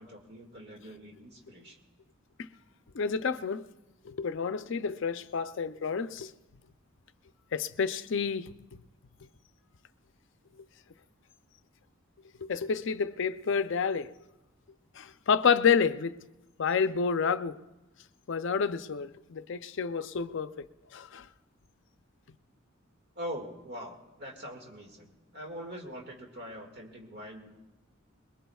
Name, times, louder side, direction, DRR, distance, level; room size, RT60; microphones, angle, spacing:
voice 1, 0.0-1.8 23.2-27.5, equal, 55° right, 2.0 m, -43 dB
voice 2, 2.9-3.7 4.0-6.3 7.5-8.5 12.4-14.1 15.0-16.1 16.6-17.6 18.3-20.7 20.9-21.3, left 6 dB, 60° left, 0.5 m, -29 dB
22.0 x 21.5 x 2.3 m
head